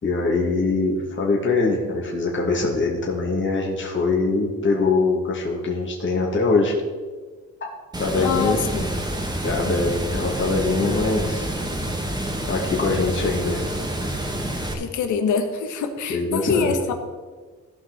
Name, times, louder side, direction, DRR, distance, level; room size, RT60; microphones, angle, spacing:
voice 1, 0.0-6.7 7.6-7.7 8.0-8.6 9.4-11.5 12.5-13.6 16.1-16.8, left 3 dB, 40° left, -2 dB, 2.5 m, -23 dB
Water, 7.9-14.7, right 1 dB, 15° right, 1.7 m, -28 dB
voice 2, 8.2-8.8 14.7-16.9, left 6 dB, 80° left, 6 dB, 1.4 m, -25 dB
16.5 x 5.8 x 4.2 m, 1.4 s
cardioid pair, 90°, 30 cm